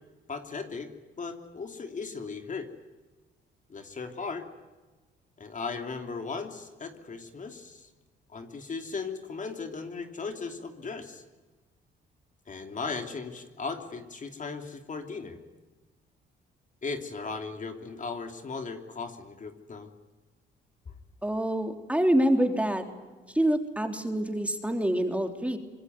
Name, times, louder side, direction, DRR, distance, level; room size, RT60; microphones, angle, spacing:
voice 1, 0.3-0.9 1.2-2.7 3.7-4.5 5.4-7.9 8.3-11.2 12.5-15.4 16.8-19.9, left 4 dB, 40° left, 5 dB, 3.1 m, -37 dB
voice 2, 21.2-22.8 23.3-25.6, right 1 dB, 5° right, 5 dB, 3.5 m, -26 dB
25.5 x 21.5 x 9.6 m, 1.2 s
cardioid pair, 90°, 20 cm